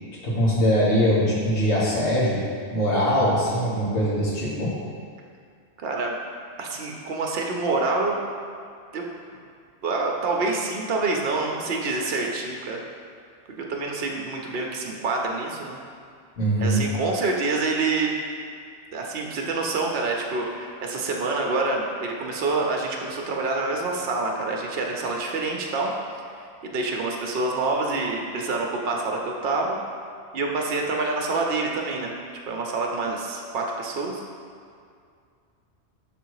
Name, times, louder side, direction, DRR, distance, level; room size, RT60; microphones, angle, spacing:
voice 1, 0.2-2.4 2.7-4.7 16.4-16.8, equal, 75° left, -8 dB, 1.8 m, -22 dB
voice 2, 5.8-6.2 6.6-8.2 8.9-9.1 9.8-12.8 13.5-15.8 16.6-18.4 18.9-25.9 26.6-29.8 30.3-32.1 32.5-34.2, right 3 dB, 65° right, 0 dB, 0.9 m, -27 dB
5.8 x 3.4 x 4.7 m, 2.3 s
omnidirectional pair, 1.1 m